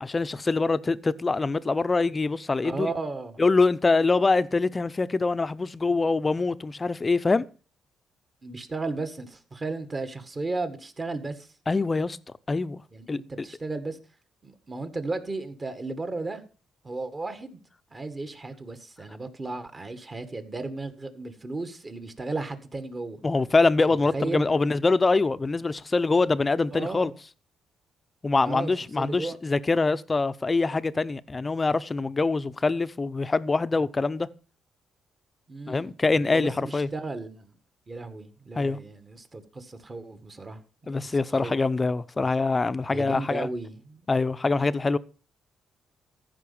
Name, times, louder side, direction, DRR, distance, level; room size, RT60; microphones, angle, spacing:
voice 1, 0.0-2.9 3.4-7.4 11.7-12.2 12.5-12.8 13.1-13.2 23.2-27.1 28.2-34.3 35.7-36.9 38.6-38.8 40.9-43.5 44.1-45.0, left 3 dB, 25° left, 0.7 m, -24 dB
voice 2, 2.6-3.4 8.4-11.5 12.9-14.0 14.4-16.4 16.8-17.6 17.9-23.2 23.9-24.4 26.7-27.1 28.5-29.4 35.5-35.9 36.3-37.6 37.9-41.6 42.9-44.1, right 3 dB, 30° right, 1.8 m, -35 dB
14.5 x 5.4 x 7.1 m
cardioid pair, 90°, 0 cm